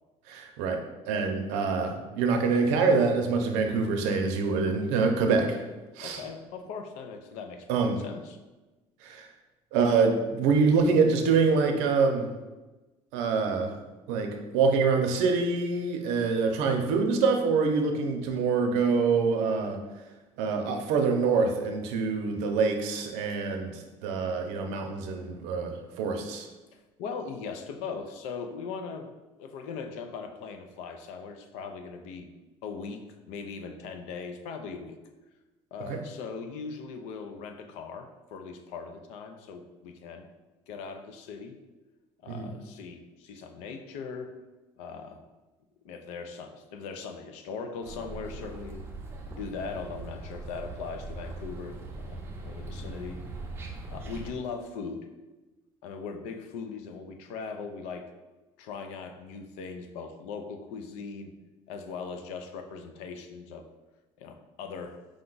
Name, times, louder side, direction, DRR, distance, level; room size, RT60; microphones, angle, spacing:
voice 1, 0.3-0.8 1.1-5.6 6.0-6.2 7.7-8.0 9.0-9.3 9.7-12.3 13.1-13.8 14.1-19.8 20.4-26.5 35.9-36.0 42.3-42.5, right 4 dB, 85° right, 4 dB, 0.6 m, -25 dB
voice 2, 6.0-8.4 26.7-29.1 29.4-32.3 32.6-35.0 35.7-40.3 40.7-41.6 42.2-44.3 44.8-45.2 45.8-48.9 49.3-53.2 53.9-55.1 55.8-58.1 58.6-61.3 61.7-63.7 64.2-65.0, left 5 dB, 80° left, 7 dB, 0.5 m, -39 dB
sound 1, 47.8-54.3, right 2 dB, 20° right, 0.5 m, -40 dB
5.0 x 2.3 x 3.9 m, 1.1 s
cardioid pair, 165°, 11 cm